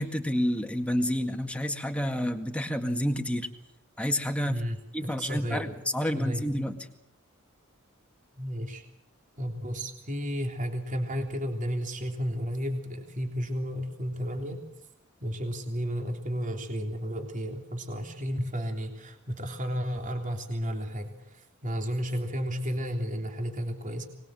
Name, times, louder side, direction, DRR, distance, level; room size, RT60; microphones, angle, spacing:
voice 1, 0.0-3.5 4.0-4.6 4.9-6.8, equal, 5° left, 5 dB, 2.0 m, -29 dB
voice 2, 4.5-5.8 6.1-6.5 8.4-8.8 9.4-14.6 15.2-24.1, equal, 40° right, 3 dB, 3.4 m, -33 dB
24.5 x 20.5 x 7.8 m, 0.78 s
head